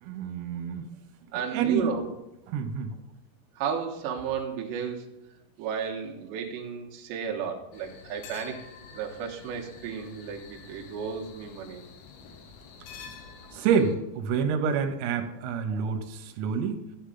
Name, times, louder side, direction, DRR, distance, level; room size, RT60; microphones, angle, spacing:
voice 1, 0.0-0.9 1.3-1.9 2.5-2.9 13.5-16.8, right 6 dB, 85° right, 6 dB, 3.6 m, -28 dB
voice 2, 1.3-2.1 3.6-5.1 5.6-8.6 8.9-11.8 15.7-15.9, right 7 dB, 70° right, -1 dB, 3.1 m, -33 dB
sound 1, 7.7-13.9, left 6 dB, 80° left, 2.3 m, -48 dB
12.5 x 8.8 x 3.8 m, 0.92 s
omnidirectional pair, 6.0 m